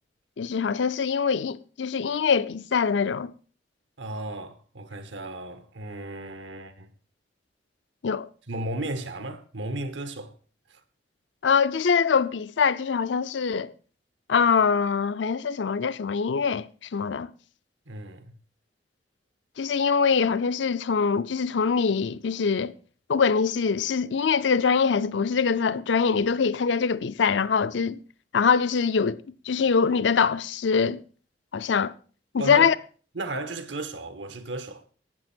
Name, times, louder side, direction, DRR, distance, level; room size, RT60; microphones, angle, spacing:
voice 1, 0.4-3.3 8.0-8.3 11.4-13.7 14.3-17.3 19.6-22.7 23.1-28.0 28.3-31.0 31.5-31.9 32.4-32.7, left 6 dB, 85° left, 0.5 m, -23 dB
voice 2, 4.0-6.9 8.5-10.4 10.7-10.8 17.9-18.3 32.4-32.7 33.1-34.8, right 2 dB, 90° right, 1.3 m, -34 dB
12.5 x 8.6 x 4.4 m
head